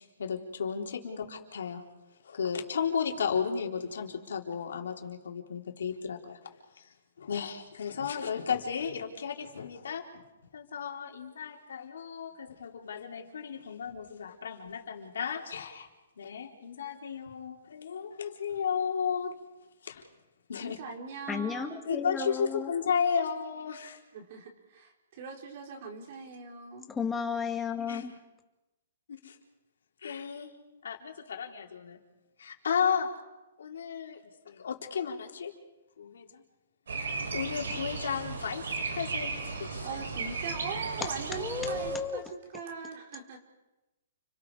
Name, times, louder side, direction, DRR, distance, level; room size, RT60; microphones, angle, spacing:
voice 1, 0.0-1.8 2.2-6.4 6.8-6.9 7.2-10.2 10.5-15.9 16.2-19.4 19.8-20.0 20.5-20.8 21.8-24.0 27.9-28.2 29.2-29.4 30.0-30.5 30.8-32.0 32.4-33.1 33.6-34.2 34.5-35.5 36.0-36.4 36.9-40.0, left 6 dB, 80° left, 1 dB, 4.0 m, -34 dB
voice 2, 20.6-21.8 24.1-26.9 39.8-43.4, right 5 dB, 50° right, 2 dB, 4.0 m, -41 dB
voice 3, 21.3-22.7 26.9-28.1 41.3-42.2, left 6 dB, 10° left, 4 dB, 2.1 m, -33 dB
sound 1, 36.9-42.0, right 4 dB, 85° right, 6.9 m, -35 dB
30.0 x 23.5 x 5.0 m, 1.1 s
hypercardioid pair, 155°, 0 cm